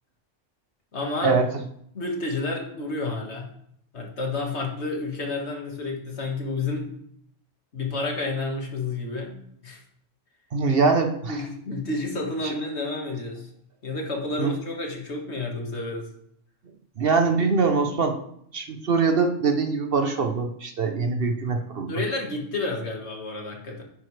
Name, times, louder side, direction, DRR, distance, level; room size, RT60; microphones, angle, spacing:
voice 1, 0.9-1.4 1.9-3.5 3.9-6.9 7.7-9.8 11.3-13.5 13.8-16.1 21.9-23.8, left 2 dB, 60° left, 1 dB, 2.0 m, -30 dB
voice 2, 10.5-11.4 12.4-12.5 14.4-14.5 17.0-18.2 18.5-21.9, right 4 dB, 55° right, 6 dB, 1.0 m, -23 dB
10.0 x 9.1 x 3.3 m, 0.69 s
omnidirectional pair, 1.3 m